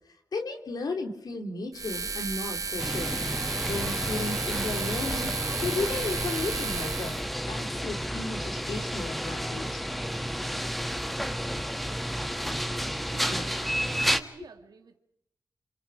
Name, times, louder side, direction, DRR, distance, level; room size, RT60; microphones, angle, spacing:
voice 1, 0.3-5.4 5.6-7.2 7.5-9.8 11.5-11.6 13.3-13.5, left 3 dB, 75° left, 4 dB, 3.4 m, -34 dB
sound 1, 1.7-7.2, right 4 dB, 55° right, 1.3 m, -33 dB
Sliding door, 2.5-7.7, left 1 dB, 25° left, 2.1 m, -46 dB
sound 2, 2.8-14.2, equal, ahead, 1.5 m, -31 dB
voice 2, 13.1-15.0, right 5 dB, 80° right, 7 dB, 2.2 m, -48 dB
27.5 x 27.0 x 5.0 m, 0.79 s
cardioid pair, 50°, 7 cm